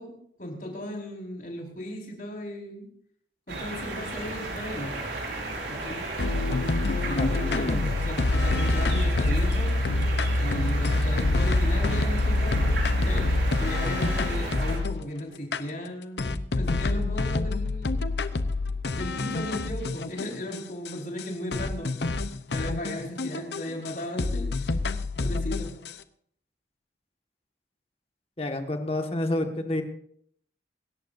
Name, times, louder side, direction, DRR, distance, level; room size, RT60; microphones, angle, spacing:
voice 1, 0.0-2.9 3.5-5.0 5.7-6.0 7.0-9.7 10.4-18.0 18.9-21.9 22.5-24.7 25.2-25.7, left 1 dB, 50° left, 0 dB, 4.8 m, -36 dB
sound 1, 3.5-14.8, right 2 dB, 90° right, 5.3 m, -34 dB
sound 2, 6.2-15.1 15.5-15.6 16.2-20.6 20.9-21.0 21.2-21.3 21.5-23.9 24.2-25.9, left 2 dB, 75° left, 0.8 m, -26 dB
voice 2, 28.4-29.8, left 1 dB, 35° left, 5 dB, 1.7 m, -29 dB
26.5 x 14.0 x 2.7 m, 0.65 s
head